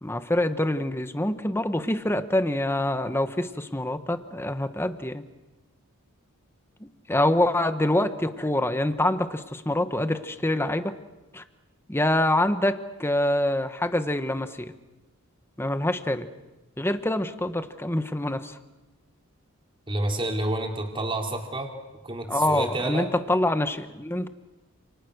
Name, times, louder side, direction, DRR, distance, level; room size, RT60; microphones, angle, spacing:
voice 1, 0.0-5.2 6.8-11.0 11.3-11.4 11.9-14.7 15.6-16.3 16.8-18.6 22.3-24.3, left 1 dB, 10° left, 9 dB, 1.2 m, -25 dB
voice 2, 19.9-21.7 22.0-23.1, right 1 dB, 25° right, 2 dB, 4.0 m, -29 dB
30.0 x 29.0 x 6.6 m, 1.1 s
head